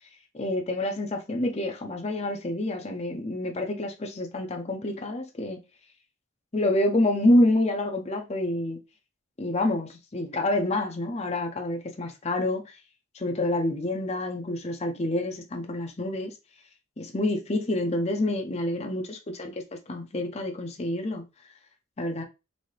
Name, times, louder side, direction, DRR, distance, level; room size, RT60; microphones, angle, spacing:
voice 1, 0.3-5.6 6.5-8.8 9.4-12.8 13.1-16.3 17.0-21.2 22.0-22.2, left 1 dB, 30° left, 0.6 m, -27 dB
4.1 x 2.7 x 3.2 m
head